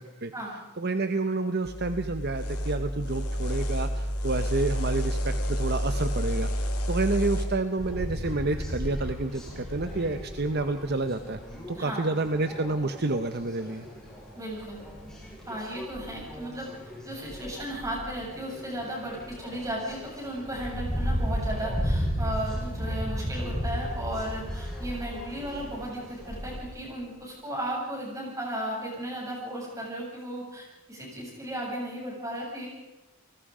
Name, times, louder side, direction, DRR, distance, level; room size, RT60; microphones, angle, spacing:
voice 1, 0.8-6.5 6.9-11.4 11.7-13.9, right 2 dB, 45° right, 9 dB, 0.9 m, -29 dB
sound 1, 1.6-7.5, equal, 85° left, 3.1 m, -29 dB
sound 2, 7.8-26.6, equal, 5° left, 6.9 m, -35 dB
voice 2, 11.7-12.1 14.3-14.8 15.5-16.7 17.1-32.7, right 1 dB, 15° right, -3 dB, 7.6 m, -35 dB
29.5 x 19.5 x 5.1 m, 1.0 s
head